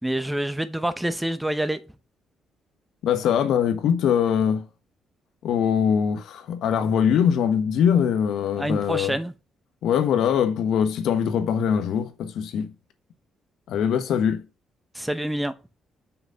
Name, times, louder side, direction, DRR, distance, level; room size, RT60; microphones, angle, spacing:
voice 1, 0.0-2.0 8.6-9.3 14.9-15.5, right 1 dB, 5° right, 0.9 m, -27 dB
voice 2, 3.0-4.7 5.4-9.1 9.8-12.7 13.7-14.4, left 8 dB, 80° left, 1.1 m, -22 dB
5.9 x 3.9 x 5.6 m
cardioid pair, 90°, 0 cm